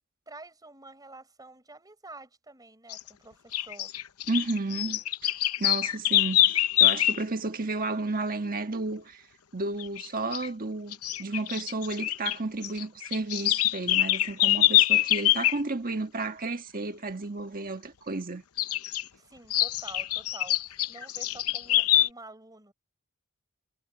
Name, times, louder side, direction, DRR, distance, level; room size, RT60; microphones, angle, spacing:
voice 1, 0.3-3.9 19.2-22.7, right 2 dB, 15° right, 5.9 m, -48 dB
sound 1, 2.9-3.1 3.5-7.2 9.8-10.1 10.3-10.5 10.9-12.4 12.6-15.6 18.6-19.0 19.5-22.1, left 14 dB, 75° left, 0.8 m, -24 dB
voice 2, 4.3-5.3 5.6-9.2 9.5-18.4, right 3 dB, 40° right, 1.6 m, -32 dB
head